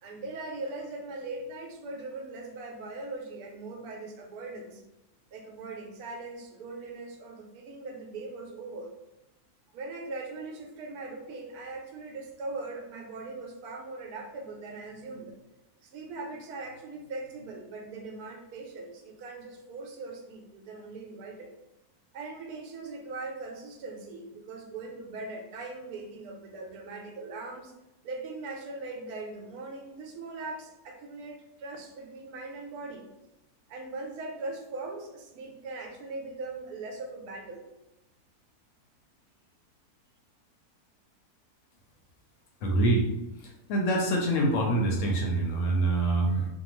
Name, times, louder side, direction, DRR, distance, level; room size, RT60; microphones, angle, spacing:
voice 1, 0.0-4.8 5.3-9.0 9.7-15.4 15.8-21.5 22.1-27.7 28.0-33.0 33.7-37.7, right 3 dB, 80° right, 3 dB, 1.1 m, -40 dB
voice 2, 42.6-43.0 43.7-46.5, right 2 dB, 65° left, -1 dB, 0.8 m, -25 dB
2.7 x 2.2 x 3.0 m, 0.90 s
omnidirectional pair, 1.6 m